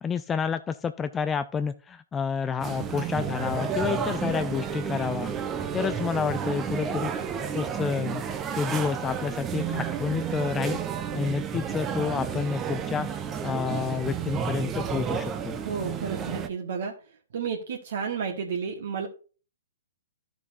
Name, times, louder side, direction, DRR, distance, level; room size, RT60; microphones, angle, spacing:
voice 1, 0.0-5.3 5.7-7.1 7.5-8.2 8.5-10.8 11.1-13.1 13.4-15.6, left 6 dB, 15° left, 10 dB, 0.4 m, -29 dB
sound 1, 2.6-16.5, right 7 dB, 20° right, 0.8 m, -31 dB
voice 2, 15.6-16.9 17.3-19.1, right 6 dB, 60° right, 1 dB, 1.4 m, -31 dB
13.0 x 6.0 x 2.6 m, 0.36 s
figure-of-eight pair, 120°, 0 cm